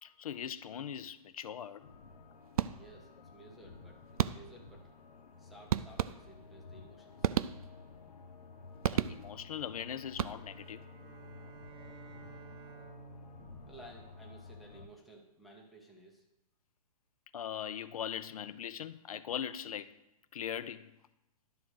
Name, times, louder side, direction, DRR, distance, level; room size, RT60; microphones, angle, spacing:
voice 1, 0.0-1.9 8.9-10.8 17.3-19.9 20.3-21.0, left 9 dB, 65° left, 0.5 m, -40 dB
sound 1, 1.8-14.9, left 4 dB, 90° left, 1.2 m, -53 dB
sound 2, 2.6-3.1 4.2-4.7 5.7-6.6 7.2-8.0 8.8-9.5 10.1-10.7, right 10 dB, 70° right, 0.4 m, -34 dB
voice 2, 2.7-4.9 5.4-7.3 13.7-16.2, right 2 dB, ahead, 0.5 m, -56 dB
sound 3, 10.2-14.7, right 5 dB, 40° right, 1.0 m, -54 dB
11.5 x 3.9 x 6.2 m
hypercardioid pair, 170°, 20 cm